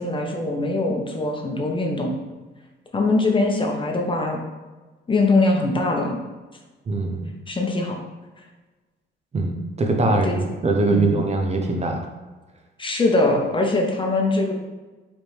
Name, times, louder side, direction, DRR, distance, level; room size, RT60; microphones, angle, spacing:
voice 1, 0.0-2.2 2.9-4.4 5.1-6.2 7.5-8.0 10.0-10.4 10.9-11.2 12.8-14.5, left 2 dB, 25° left, 1 dB, 0.9 m, -22 dB
voice 2, 6.9-7.3 9.3-12.1, right 3 dB, 35° right, 3 dB, 0.6 m, -22 dB
4.7 x 3.4 x 3.2 m, 1.2 s
cardioid pair, 90°, 20 cm